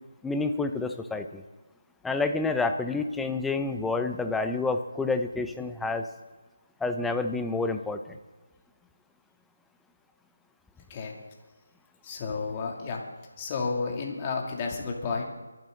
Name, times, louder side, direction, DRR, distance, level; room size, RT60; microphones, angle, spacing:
voice 1, 0.2-1.4 2.0-6.1 6.8-8.2, left 3 dB, 5° left, 7 dB, 0.7 m, -29 dB
voice 2, 12.0-13.0 13.4-15.2, left 4 dB, 25° left, 0 dB, 2.8 m, -31 dB
23.5 x 12.0 x 4.0 m, 1.2 s
figure-of-eight pair, 160°, 0 cm